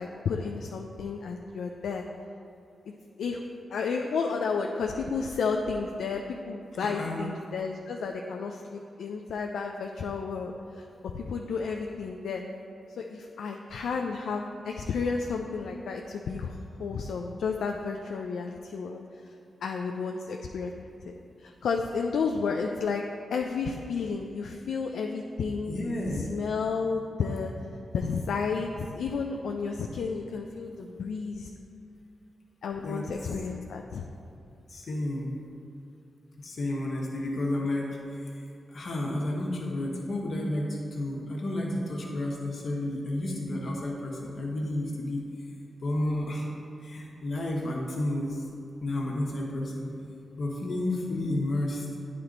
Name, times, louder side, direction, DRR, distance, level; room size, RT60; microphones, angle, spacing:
voice 1, 0.0-2.0 3.2-3.4 3.7-10.8 11.1-12.4 13.0-19.0 19.6-20.7 21.1-21.2 21.4-23.0 23.3-25.8 26.1-27.5 27.9-31.5 32.6-34.1, left 5 dB, 80° left, 2 dB, 0.3 m, -32 dB
voice 2, 6.8-7.2 25.7-26.4 32.8-33.1 34.7-35.3 36.4-38.3 38.7-45.2 45.8-46.5 46.8-48.4 48.8-49.9 50.4-51.9, left 1 dB, 65° left, -2 dB, 1.3 m, -31 dB
9.2 x 4.3 x 3.9 m, 2.7 s
supercardioid pair, 45°, 0 cm